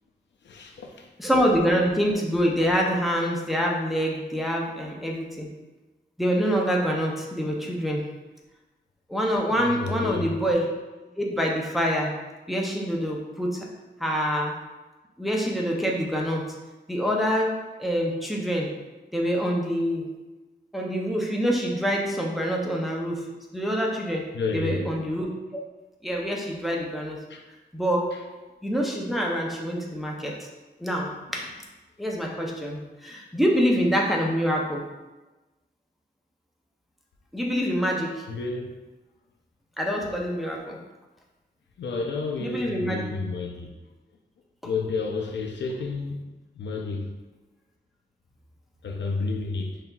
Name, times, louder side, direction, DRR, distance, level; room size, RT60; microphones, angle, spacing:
voice 1, 0.4-1.1 9.6-10.3 24.3-24.9 27.3-27.4 28.1-28.2 31.3-31.4 32.0-32.1 38.3-38.7 41.8-43.7 44.6-47.1 48.8-49.8, left 4 dB, 85° left, 1 dB, 0.5 m, -31 dB
voice 2, 1.2-5.5 6.2-8.1 9.1-10.7 11.2-12.1 12.5-13.6 14.0-14.5 15.2-16.4 16.9-18.7 19.1-20.1 20.7-24.3 24.5-25.6 26.0-27.2 27.7-28.2 28.6-30.5 30.8-31.5 32.0-34.8 37.3-38.2 39.8-40.8 42.4-43.1, equal, ahead, -2 dB, 0.5 m, -26 dB
5.6 x 2.7 x 2.3 m, 1.1 s
wide cardioid pair, 130°, 18 cm